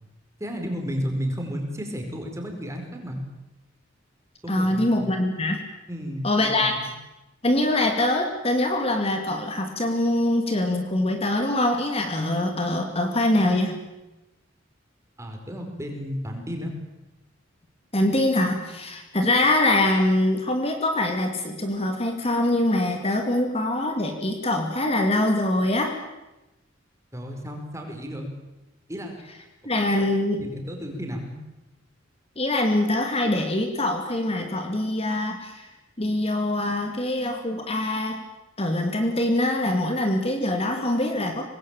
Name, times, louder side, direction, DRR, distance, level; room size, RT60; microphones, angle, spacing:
voice 1, 0.4-3.2 4.4-5.0 5.9-6.9 15.2-16.7 27.1-28.3 28.9-29.1 30.0-30.1 30.4-31.4, equal, 15° right, 3 dB, 4.7 m, -32 dB
voice 2, 4.5-5.6 6.2-6.8 7.4-13.9 17.9-25.9 29.6-30.4 32.4-35.7 36.0-38.2 38.6-41.4, left 1 dB, 30° left, 4 dB, 2.4 m, -23 dB
25.0 x 19.5 x 9.0 m, 1.0 s
head